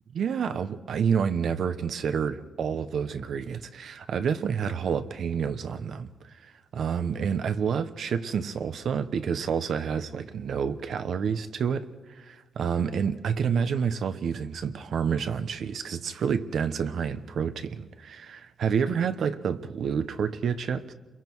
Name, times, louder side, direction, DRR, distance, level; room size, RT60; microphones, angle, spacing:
voice 1, 0.1-20.9, right 7 dB, 70° right, 1.0 m, -29 dB
30.0 x 22.5 x 4.7 m
cardioid pair, 100°, 0 cm